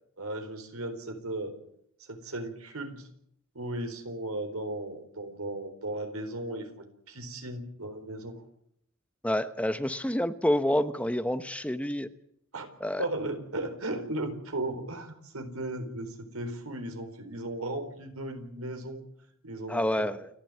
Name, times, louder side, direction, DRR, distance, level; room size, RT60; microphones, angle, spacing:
voice 1, 0.2-1.6 2.1-3.1 3.5-8.4 12.5-12.7 13.0-19.0 19.4-19.9, right 1 dB, 85° right, 7 dB, 4.3 m, -36 dB
voice 2, 9.2-12.1 12.8-13.0 19.7-20.3, left 1 dB, 5° left, 11 dB, 0.9 m, -28 dB
29.0 x 11.5 x 9.7 m, 0.71 s
head